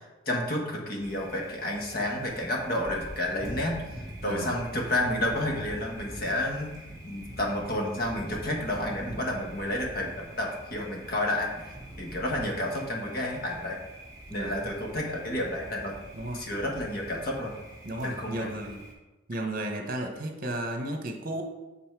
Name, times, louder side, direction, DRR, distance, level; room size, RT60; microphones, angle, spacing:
voice 1, 0.3-6.7 7.0-11.7 12.0-13.8 14.3-15.9 16.3-17.5 18.0-18.5, left 1 dB, 50° left, 0 dB, 1.3 m, -30 dB
Thunder, 1.0-18.9, right 1 dB, 20° right, 1.7 m, -44 dB
voice 2, 4.2-4.6 14.3-14.7 16.1-16.4 17.8-18.8 19.3-21.4, right 1 dB, 45° right, 4 dB, 1.0 m, -34 dB
7.7 x 4.0 x 4.6 m, 1.1 s
head